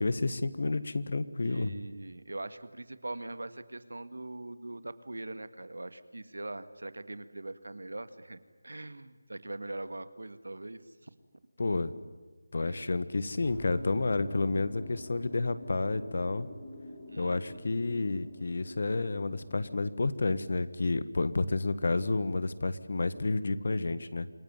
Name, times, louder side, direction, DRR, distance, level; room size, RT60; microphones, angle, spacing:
voice 1, 0.0-1.7 11.6-11.9 12.5-16.5 17.2-24.3, left 3 dB, 55° left, 15 dB, 1.5 m, -30 dB
voice 2, 1.4-11.1 12.6-12.8 17.1-17.6, right 2 dB, 90° right, 12 dB, 1.9 m, -42 dB
sound 1, 13.4-20.4, left 1 dB, 15° left, 5.4 m, -46 dB
27.5 x 18.0 x 9.6 m, 1.4 s
figure-of-eight pair, 170°, 0 cm